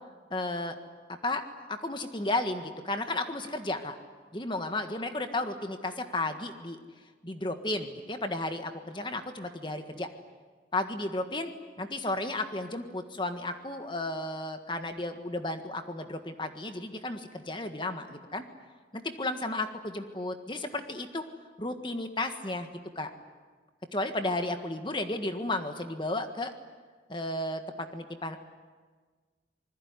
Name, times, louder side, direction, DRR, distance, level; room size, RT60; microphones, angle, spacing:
voice 1, 0.3-0.8 1.2-1.4 1.7-4.0 4.3-6.8 7.2-10.1 10.7-11.5 11.8-18.4 18.9-21.3 21.6-22.7 22.9-23.1 23.9-26.5 27.1-28.4, left 2 dB, 25° left, 7 dB, 1.6 m, -33 dB
26.5 x 20.5 x 9.7 m, 1.5 s
head